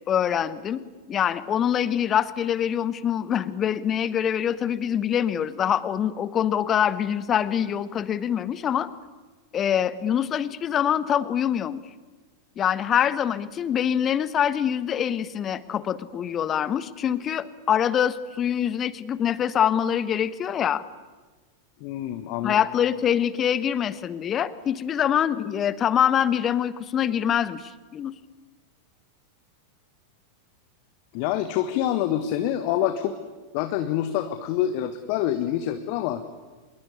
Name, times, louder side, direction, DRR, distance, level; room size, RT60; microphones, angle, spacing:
voice 1, 0.1-0.8 1.1-8.9 9.5-11.8 12.6-20.8 22.4-28.1, left 9 dB, 25° left, 17 dB, 1.3 m, -24 dB
voice 2, 21.8-22.6 31.1-33.1 33.5-36.2, left 11 dB, 45° left, 10 dB, 1.6 m, -26 dB
25.5 x 21.5 x 9.9 m, 1.3 s
figure-of-eight pair, 90°, 0 cm